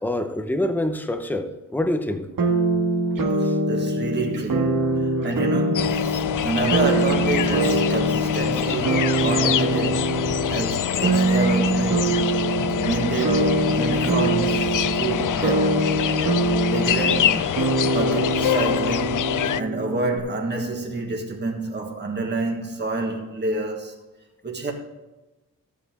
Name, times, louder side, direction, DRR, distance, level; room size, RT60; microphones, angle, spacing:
voice 1, 0.0-2.3 3.4-3.5 11.0-11.1, left 1 dB, 5° left, 0.8 m, -26 dB
sound 1, 2.4-20.2, right 2 dB, 70° right, 1.6 m, -23 dB
voice 2, 3.7-10.1 10.5-12.2 12.8-15.8 16.7-24.0 24.4-24.7, right 3 dB, 30° right, 1.6 m, -28 dB
sound 2, 5.7-19.6, left 10 dB, 65° left, 0.4 m, -25 dB
14.0 x 8.4 x 3.7 m
wide cardioid pair, 155°, 34 cm